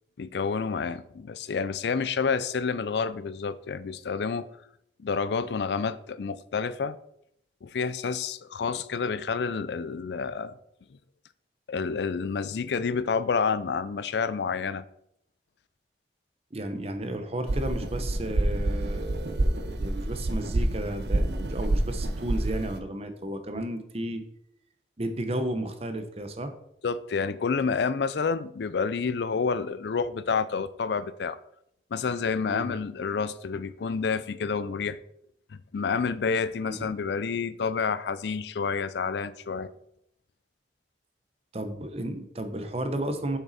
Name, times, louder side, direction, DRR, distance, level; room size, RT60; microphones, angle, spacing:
voice 1, 0.2-4.5 5.0-7.0 7.6-10.5 11.7-14.8 23.5-23.6 26.8-31.4 31.9-35.0 35.5-39.7, left 5 dB, 75° left, 0.4 m, -29 dB
voice 2, 16.5-24.2 25.0-26.5 32.5-32.7 36.6-36.9 41.5-43.4, right 1 dB, 35° right, 0.9 m, -33 dB
sound 1, 17.5-22.8, right 1 dB, 70° right, 0.7 m, -28 dB
7.1 x 6.0 x 4.1 m
head